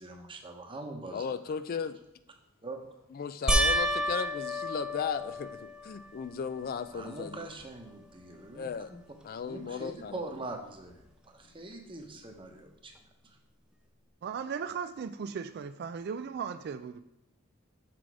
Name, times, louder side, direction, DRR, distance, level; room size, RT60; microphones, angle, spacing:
voice 1, 0.0-1.6 2.6-2.8 6.9-9.0 9.5-12.9 13.2-13.4, right 2 dB, 25° right, 3 dB, 1.0 m, -43 dB
voice 2, 1.1-2.0 3.1-7.4 8.5-8.9 9.2-10.2, left 6 dB, 45° left, 12 dB, 0.3 m, -36 dB
sound 1, 3.5-6.1 6.7-7.3 7.6-7.7 10.9-11.0, equal, 5° right, 0.6 m, -30 dB
voice 3, 14.2-17.0, right 6 dB, 50° right, 10 dB, 0.3 m, -37 dB
6.2 x 6.0 x 4.8 m, 0.86 s
head